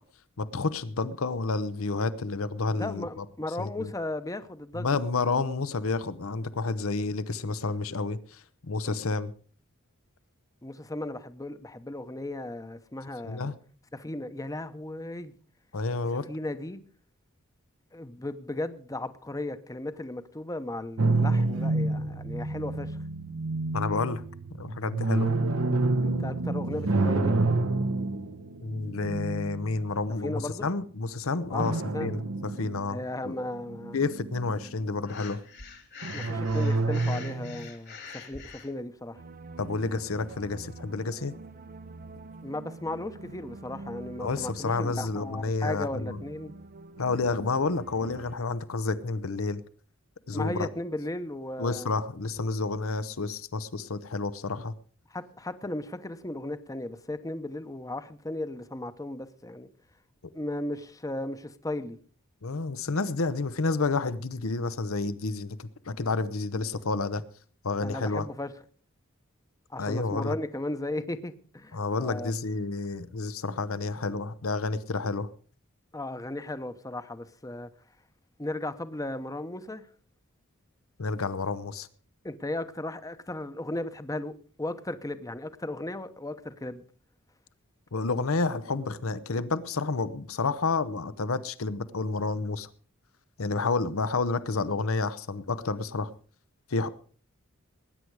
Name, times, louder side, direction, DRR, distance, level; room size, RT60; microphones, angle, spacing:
voice 1, 0.4-3.2 3.6-3.9 4.7-9.3 13.2-13.5 15.7-16.3 23.7-24.2 24.6-25.3 28.6-33.0 33.2-33.4 33.9-35.4 39.6-41.3 44.2-46.2 47.0-49.6 50.3-50.7 51.6-54.7 62.4-67.2 67.6-68.3 69.8-70.4 71.7-75.3 81.0-81.9 87.9-92.7 93.4-96.1 96.7-96.9, left 3 dB, 85° left, 0.9 m, -30 dB
voice 2, 2.7-4.9 10.6-13.5 13.9-15.3 16.3-16.8 17.9-23.0 26.0-27.4 30.2-30.7 31.5-32.2 32.9-34.0 36.1-39.2 42.4-46.5 50.3-51.9 55.1-59.7 60.3-62.0 67.8-68.5 69.7-72.3 75.9-77.7 78.4-79.9 82.2-86.8, left 1 dB, 15° left, 0.9 m, -36 dB
sound 1, 21.0-30.3 31.6-33.2 33.6-34.7 36.0-37.7, right 2 dB, 80° right, 1.0 m, -28 dB
Breathing, 35.0-38.7, left 5 dB, 55° left, 2.3 m, -44 dB
sound 2, 39.1-48.4, right 2 dB, 45° right, 0.6 m, -45 dB
19.5 x 9.6 x 4.8 m
head